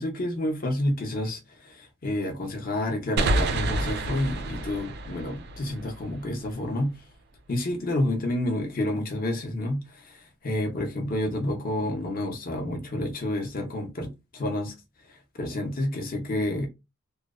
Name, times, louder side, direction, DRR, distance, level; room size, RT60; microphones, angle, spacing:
voice 1, 0.0-6.9 7.5-14.7 15.4-16.7, left 1 dB, 40° left, 0.6 m, -29 dB
sound 1, 3.2-6.6, right 2 dB, 50° right, 0.3 m, -29 dB
2.7 x 2.0 x 2.4 m
head